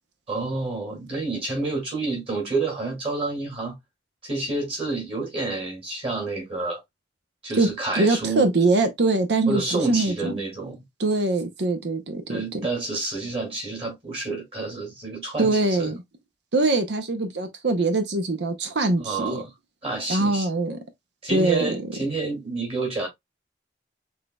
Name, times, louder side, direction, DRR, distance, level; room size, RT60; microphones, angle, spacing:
voice 1, 0.3-3.7 4.2-6.8 7.4-8.5 9.5-10.8 12.3-15.9 19.0-19.5 19.8-20.5 21.2-23.1, right 3 dB, 35° right, 2.5 m, -29 dB
voice 2, 7.5-10.4 11.0-12.6 15.4-16.0 16.5-19.4 20.1-20.8 21.3-21.8, right 2 dB, 70° right, 0.8 m, -23 dB
6.4 x 3.3 x 2.3 m
head